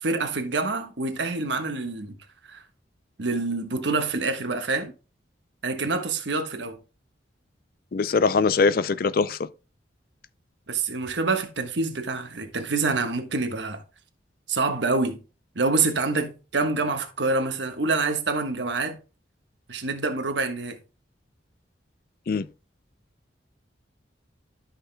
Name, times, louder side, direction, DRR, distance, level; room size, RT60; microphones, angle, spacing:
voice 1, 0.0-2.1 2.5-2.6 3.2-4.9 5.6-6.8 10.7-13.8 14.5-15.2 15.5-19.0 19.7-20.8, right 3 dB, 75° right, 1.3 m, -26 dB
voice 2, 7.9-9.5 22.3-22.5, left 4 dB, 50° left, 0.4 m, -22 dB
13.0 x 5.7 x 2.2 m
head